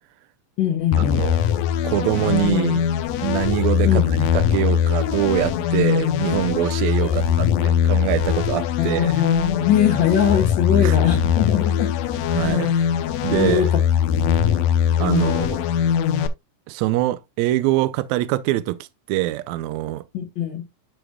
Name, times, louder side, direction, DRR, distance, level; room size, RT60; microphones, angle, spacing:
voice 1, 0.6-1.2 3.8-4.3 7.0-7.7 8.8-11.9 12.3-12.9 13.3-13.8 14.2-14.4 15.0-15.5 20.1-20.6, left 9 dB, 60° left, 1.2 m, -22 dB
sound 1, 0.9-16.3, left 9 dB, 75° left, 1.6 m, -21 dB
voice 2, 1.8-2.8 3.2-4.0 4.3-9.2 10.8-11.0 12.3-12.7 13.2-13.7 15.0-15.6 16.7-18.8 19.1-20.0, right 16 dB, 85° right, 1.6 m, -23 dB
11.0 x 5.0 x 2.2 m
omnidirectional pair, 3.7 m